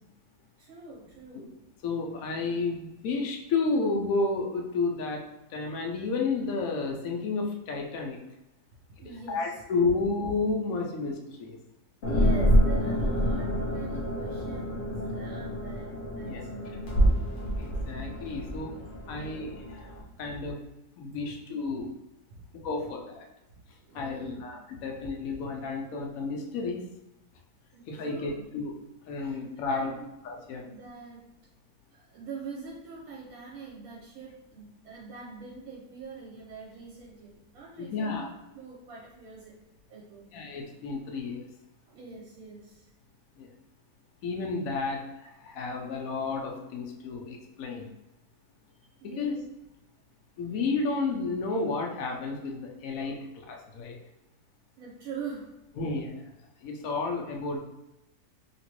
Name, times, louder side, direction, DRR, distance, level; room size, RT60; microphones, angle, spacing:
voice 1, 0.6-1.5 9.0-9.6 12.0-16.7 23.8-24.4 27.7-28.4 29.2-29.4 29.7-31.2 32.1-39.6 39.9-40.3 41.9-42.9 49.0-49.4 54.8-55.5, right 5 dB, 65° right, -5 dB, 1.1 m, -43 dB
voice 2, 1.8-5.2 5.5-8.2 9.3-11.6 16.2-16.4 17.6-18.7 19.1-20.6 21.0-21.9 22.6-23.3 23.9-26.9 27.9-28.7 29.1-29.9 30.2-30.6 37.9-38.3 40.3-41.4 43.4-43.5 44.2-47.9 49.0-49.5 50.4-54.0 55.8-56.3 56.6-57.6, left 3 dB, 70° left, 1 dB, 0.9 m, -31 dB
sound 1, 12.0-20.0, equal, 85° left, 0.4 m, -27 dB
3.0 x 2.8 x 3.0 m, 0.95 s
omnidirectional pair, 1.8 m